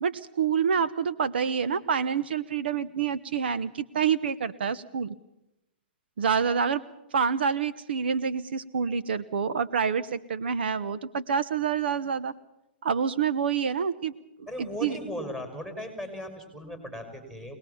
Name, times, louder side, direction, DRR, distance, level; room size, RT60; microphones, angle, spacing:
voice 1, 0.0-5.1 6.2-6.8 7.1-12.3 12.8-14.1 14.4-15.0, right 6 dB, 75° right, 14 dB, 1.0 m, -27 dB
voice 2, 14.5-17.6, equal, 10° right, 4 dB, 5.8 m, -37 dB
24.5 x 20.0 x 7.1 m, 0.85 s
hypercardioid pair, 145°, 6 cm